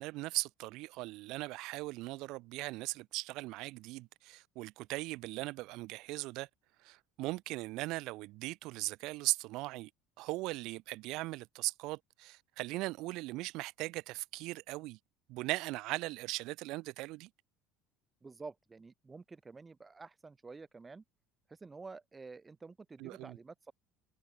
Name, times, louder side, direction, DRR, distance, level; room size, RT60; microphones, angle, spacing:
voice 1, 0.0-6.5 6.8-9.9 10.2-15.0 15.3-17.3 23.0-23.4, right 20 dB, 65° right, 0.7 m, -39 dB
voice 2, 18.2-21.0 21.5-23.7, right 4 dB, 20° right, 1.5 m, -50 dB
supercardioid pair, 120°, 0 cm